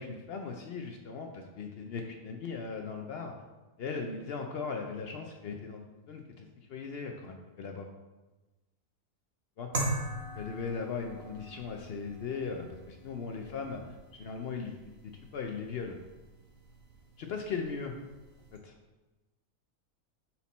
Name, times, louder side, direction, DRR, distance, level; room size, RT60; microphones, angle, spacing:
voice 1, 0.0-3.3 3.8-7.9 9.6-9.7 10.4-16.0 17.2-17.9 18.5-18.7, left 5 dB, 75° left, 3 dB, 0.5 m, -38 dB
sound 1, 9.7-18.6, right 2 dB, 45° right, 1.1 m, -42 dB
5.6 x 4.3 x 4.1 m, 1.1 s
omnidirectional pair, 1.6 m